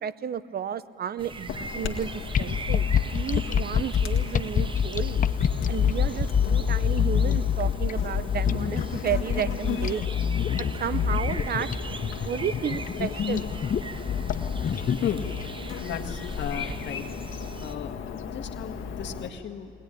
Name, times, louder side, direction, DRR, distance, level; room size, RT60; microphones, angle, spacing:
voice 1, 0.0-5.2 5.7-10.0 10.8-11.7 12.2-13.5, right 8 dB, 50° right, 16 dB, 0.8 m, -32 dB
sound 1, 1.2-17.7, right 4 dB, 25° right, 0.8 m, -41 dB
Chirp tweet / Buzz, 1.5-19.3, left 6 dB, 80° left, 1.8 m, -36 dB
sound 2, 2.3-15.4, left 8 dB, 45° left, 0.7 m, -26 dB
voice 2, 14.9-15.2 15.9-17.1 17.6-17.9 18.3-19.7, left 9 dB, 65° left, 5 dB, 1.9 m, -34 dB
22.0 x 19.0 x 10.0 m, 2.7 s
cardioid pair, 90°, 20 cm